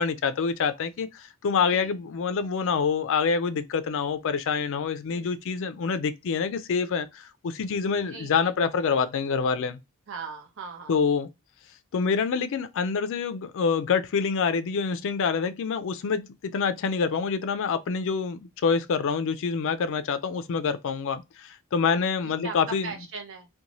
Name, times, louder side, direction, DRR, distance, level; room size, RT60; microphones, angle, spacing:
voice 1, 0.0-9.8 10.9-11.3 11.9-22.9, left 5 dB, 60° left, 0.4 m, -26 dB
voice 2, 8.0-8.5 10.1-11.0 22.0-23.5, right 4 dB, 60° right, 0.7 m, -40 dB
2.6 x 2.2 x 2.9 m
head